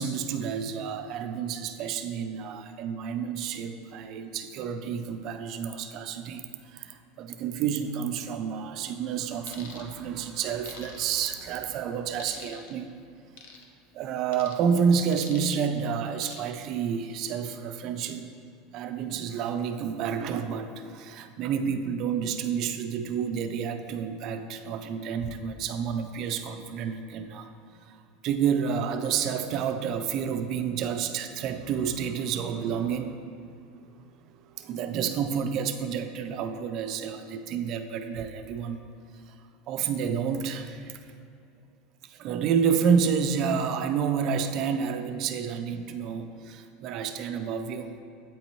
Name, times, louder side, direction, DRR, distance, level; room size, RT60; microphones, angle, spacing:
voice 1, 0.0-6.5 6.7-12.9 13.9-18.3 18.7-27.5 28.2-33.2 34.6-38.8 39.7-40.9 42.1-47.9, right 7 dB, 35° right, 7 dB, 0.3 m, -29 dB
sound 1, 9.5-9.8 10.6-11.3 12.2-12.7 13.4-13.6 14.3-14.6 15.1-15.6 16.2-16.6 17.1-17.3, left 5 dB, 75° left, 0.6 m, -45 dB
8.3 x 4.1 x 3.0 m, 2.5 s
supercardioid pair, 175°, 0 cm